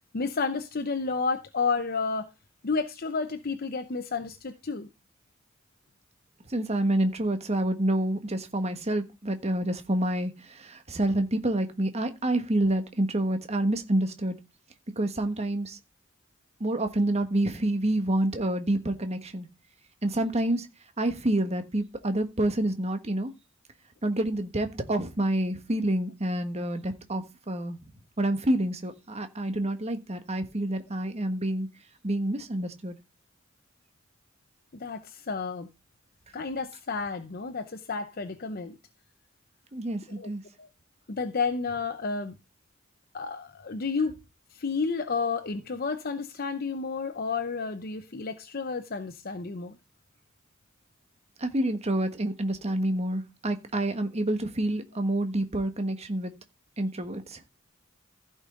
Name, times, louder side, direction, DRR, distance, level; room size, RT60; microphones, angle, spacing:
voice 1, 0.1-2.3 2.6-4.9 34.7-35.7 36.3-38.8 40.2-40.3 40.6-40.7 41.1-42.3 43.1-44.2 44.5-49.8, left 4 dB, 50° left, 0.8 m, -31 dB
voice 2, 6.5-14.4 15.0-15.8 16.6-19.5 20.0-20.7 21.0-23.3 24.0-27.8 28.2-31.7 32.0-32.9 39.7-40.4 51.4-56.3 56.8-57.4, right 1 dB, 35° right, 1.4 m, -28 dB
15.0 x 5.5 x 3.8 m
head